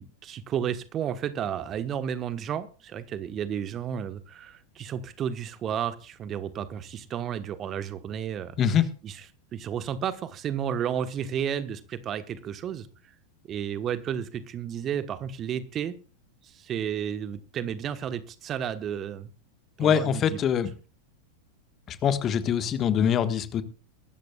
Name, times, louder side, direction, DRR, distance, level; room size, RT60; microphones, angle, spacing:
voice 1, 0.0-9.2 9.5-12.9 13.5-15.9 16.4-19.3 19.8-20.4, right 9 dB, 30° right, 13 dB, 1.2 m, -32 dB
voice 2, 19.8-20.7 21.9-23.6, left 8 dB, 30° left, 11 dB, 1.4 m, -24 dB
23.0 x 13.5 x 2.4 m, 0.37 s
figure-of-eight pair, 90°, 0 cm